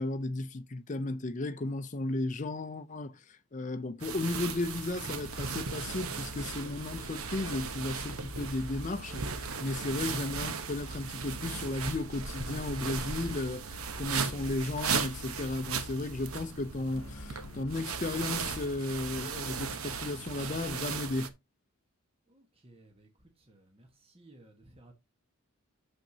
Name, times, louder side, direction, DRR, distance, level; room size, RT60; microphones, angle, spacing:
voice 1, 0.0-21.3, left 2 dB, 35° left, 0.5 m, -34 dB
sound 1, 4.0-21.3, right 5 dB, 80° right, 0.9 m, -37 dB
sound 2, 5.2-20.0, left 2 dB, 75° left, 0.7 m, -48 dB
voice 2, 22.3-24.9, right 2 dB, 25° right, 1.3 m, -58 dB
9.0 x 6.5 x 2.7 m
head